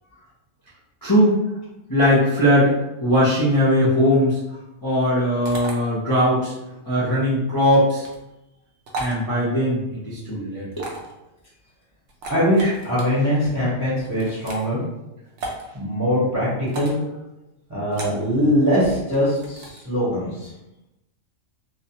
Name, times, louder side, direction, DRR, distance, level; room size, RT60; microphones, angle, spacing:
voice 1, 1.0-1.4 1.9-2.7 3.0-4.4 4.8-6.5 6.9-8.1 9.0-10.7, equal, 30° left, -10 dB, 0.4 m, -19 dB
sound 1, 5.4-5.7 7.9-8.2 8.9-9.2 10.7-11.1 12.1-13.0 14.0-14.7 15.4-15.6 16.7-17.0 17.9-18.2 19.1-19.8, right 2 dB, 70° right, 0.8 m, -34 dB
voice 2, 12.3-14.8 15.7-16.9 17.7-20.5, equal, 15° right, -10 dB, 0.7 m, -22 dB
2.4 x 2.1 x 2.8 m, 0.93 s
omnidirectional pair, 1.3 m